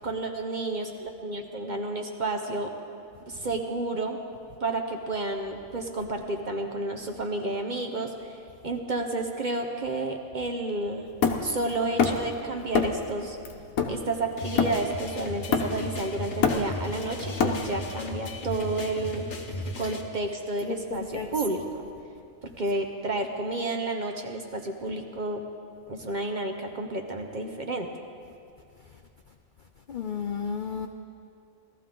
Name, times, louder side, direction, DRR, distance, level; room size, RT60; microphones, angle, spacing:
voice 1, 0.0-2.7 3.3-4.2 4.6-8.4 8.6-11.1 11.4-13.4 13.9-19.3 19.8-21.8 22.4-25.4 25.9-27.9, right 2 dB, 40° right, 4 dB, 0.8 m, -31 dB
Hammer, 11.2-12.3 12.7-13.1 13.4-15.0 15.5-16.0 16.2-17.9, left 5 dB, 85° left, 1.3 m, -26 dB
sound 1, 14.4-20.0, left 2 dB, 40° left, 1.0 m, -36 dB
voice 2, 20.9-21.3 29.9-30.9, left 6 dB, 65° left, 6 dB, 0.5 m, -32 dB
17.5 x 13.5 x 3.8 m, 2.4 s
omnidirectional pair, 1.4 m